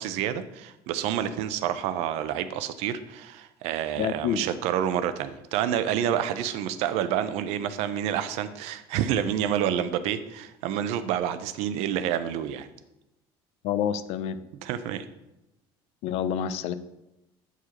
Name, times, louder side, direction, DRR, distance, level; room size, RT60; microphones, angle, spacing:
voice 1, 0.0-12.7 14.6-15.1, right 10 dB, 80° right, 11 dB, 0.5 m, -28 dB
voice 2, 4.0-4.4 13.6-14.4 16.0-16.7, left 9 dB, 70° left, 12 dB, 0.4 m, -28 dB
7.8 x 4.8 x 2.9 m, 0.93 s
cardioid pair, 115°, 11 cm